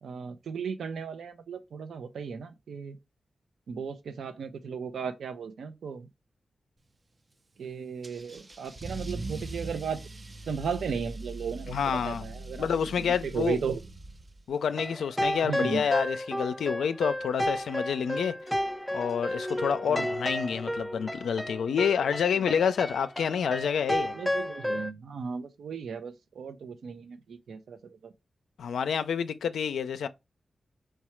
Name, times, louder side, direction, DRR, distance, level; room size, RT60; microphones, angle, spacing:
voice 1, 0.0-3.0 3.7-6.1 7.6-10.0 10.5-12.7 13.0-13.8 15.4-15.8 19.9-20.1 24.1-28.1, right 6 dB, 85° right, 0.6 m, -35 dB
Car / Engine starting / Accelerating revving vroom, 8.0-14.5, right 2 dB, 40° right, 0.6 m, -41 dB
voice 2, 11.7-12.3 12.6-13.6 14.5-18.4 18.9-24.2 28.6-30.1, left 7 dB, 85° left, 0.4 m, -28 dB
sound 1, 14.7-24.9, equal, 5° left, 0.4 m, -32 dB
4.7 x 2.3 x 4.3 m
cardioid pair, 40°, 0 cm